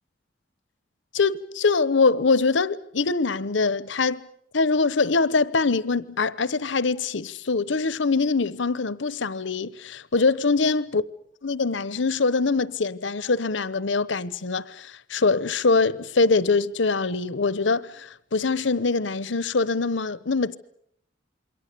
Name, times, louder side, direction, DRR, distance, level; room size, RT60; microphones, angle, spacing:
voice 1, 1.1-4.2 4.5-11.0 11.4-20.6, left 4 dB, 70° left, 0.9 m, -23 dB
27.5 x 23.0 x 6.8 m
head